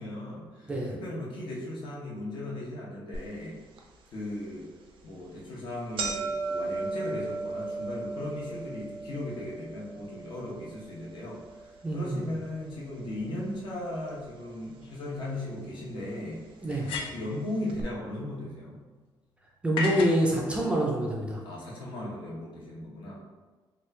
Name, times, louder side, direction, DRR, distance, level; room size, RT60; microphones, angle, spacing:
voice 1, 0.0-3.6 4.1-4.6 5.0-11.7 11.9-16.4 17.1-18.8 21.4-23.2, left 1 dB, 60° left, -5 dB, 0.9 m, -37 dB
sound 1, 3.1-3.2 3.8-3.9 4.7-4.9 5.2-5.3 5.6-13.8 14.1-14.8 15.6-15.7 16.7-16.8 17.0-17.1 17.7-17.8, right 3 dB, 75° right, 0.5 m, -37 dB
voice 2, 11.8-12.3 16.6-16.9 19.6-21.4, equal, 10° right, -3 dB, 0.4 m, -26 dB
sound 2, 14.8-14.9 16.7-17.4 19.8-20.2, left 3 dB, 80° left, 0.4 m, -33 dB
3.0 x 2.3 x 3.2 m, 1.3 s
cardioid pair, 160°, 9 cm